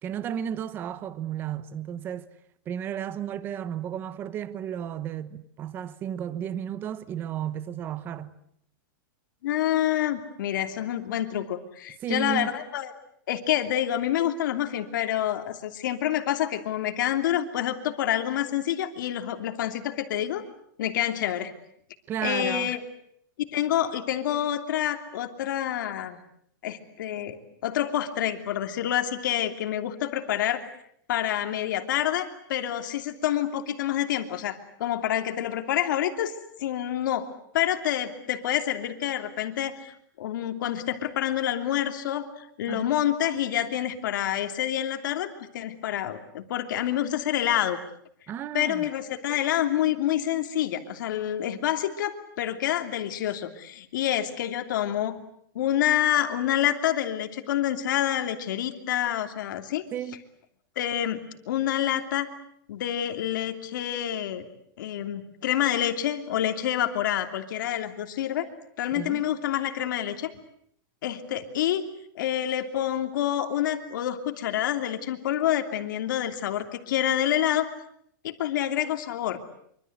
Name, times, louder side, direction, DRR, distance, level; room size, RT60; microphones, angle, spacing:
voice 1, 0.0-2.3 2.7-8.3 12.0-12.5 22.1-22.7 42.7-43.0 48.3-48.8 59.9-60.2 68.9-69.2, right 9 dB, 20° right, 1.0 m, -33 dB
voice 2, 9.4-12.9 13.3-20.4 20.8-21.5 22.2-22.8 23.5-26.2 26.6-27.4 27.6-30.7 31.1-36.3 36.6-37.3 37.5-47.8 48.5-55.2 55.5-59.8 60.8-62.3 62.7-64.4 64.8-68.5 68.8-70.3 71.0-71.9 72.1-77.7 78.2-79.4, left 11 dB, 60° left, 2.9 m, -27 dB
25.5 x 25.0 x 8.1 m
supercardioid pair, 175°, 12 cm